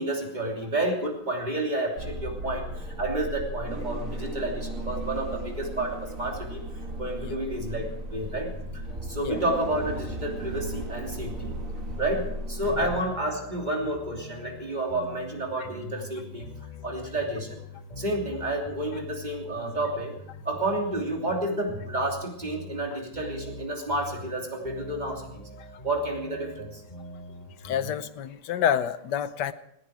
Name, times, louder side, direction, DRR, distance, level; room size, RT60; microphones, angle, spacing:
voice 1, 0.0-6.6 7.0-8.5 9.0-11.5 12.0-16.5 16.8-17.6 18.0-20.1 20.4-25.4 25.8-26.8, right 1 dB, 20° right, 0 dB, 3.1 m, -30 dB
sound 1, 2.0-13.0, right 1 dB, 40° right, 2.2 m, -36 dB
sound 2, 8.2-28.0, left 2 dB, 20° left, 4.1 m, -44 dB
voice 2, 27.6-29.5, left 9 dB, 65° left, 13 dB, 1.3 m, -28 dB
20.0 x 14.5 x 4.8 m, 0.76 s
omnidirectional pair, 2.2 m